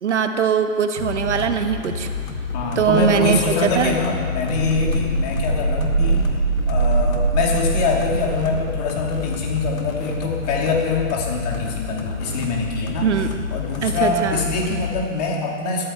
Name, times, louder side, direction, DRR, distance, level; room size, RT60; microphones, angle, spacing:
voice 1, 0.0-2.1 2.7-3.9 13.0-13.4 13.8-14.4, right 7 dB, 60° right, 7 dB, 1.4 m, -21 dB
sound 1, 1.0-15.1, left 5 dB, 85° left, 2.4 m, -29 dB
voice 2, 2.5-6.3 6.7-13.1 13.5-15.9, left 4 dB, 30° left, 0 dB, 2.6 m, -24 dB
sound 2, 4.5-9.4 9.6-9.7, right 4 dB, 10° right, 0.4 m, -23 dB
19.5 x 14.0 x 4.4 m, 2.2 s
hypercardioid pair, 150°, 40 cm